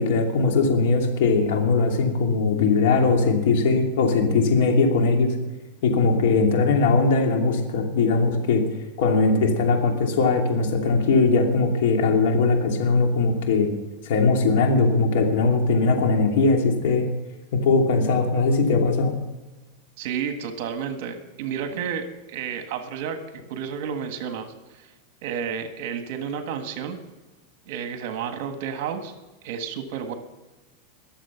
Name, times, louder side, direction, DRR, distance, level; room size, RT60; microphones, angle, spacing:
voice 1, 0.0-5.3 5.8-8.6 9.0-13.7 14.0-17.1 17.5-19.2, left 4 dB, 70° left, 2 dB, 2.7 m, -20 dB
voice 2, 20.0-23.2 23.5-24.9 25.2-27.0 27.7-29.1 29.4-30.1, right 7 dB, 60° right, 7 dB, 1.6 m, -31 dB
22.0 x 7.4 x 5.8 m, 1.1 s
supercardioid pair, 140°, 0 cm